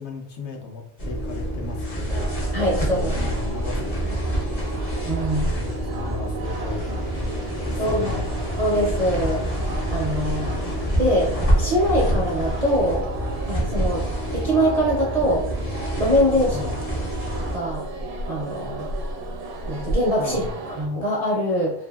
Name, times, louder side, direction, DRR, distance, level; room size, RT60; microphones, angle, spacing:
voice 1, 0.0-2.5 2.9-4.2 5.5-7.2 7.7-8.3 16.5-16.8 20.2-20.5, left 3 dB, 70° left, 2 dB, 0.8 m, -36 dB
sound 1, 1.0-17.6, equal, 40° left, 0.7 m, -27 dB
sound 2, 2.1-20.9, right 2 dB, 75° right, 0.9 m, -34 dB
voice 2, 2.5-3.2 5.1-5.5 7.8-8.2 8.6-10.6 11.0-13.1 13.5-14.0 14.3-15.5 16.0-16.7 17.5-17.8 18.3-18.9 19.7-20.4 20.7-21.7, equal, 50° right, -4 dB, 0.4 m, -23 dB
sound 3, 6.4-12.7, left 2 dB, 55° left, 1.1 m, -42 dB
2.6 x 2.6 x 2.3 m, 0.67 s
omnidirectional pair, 1.3 m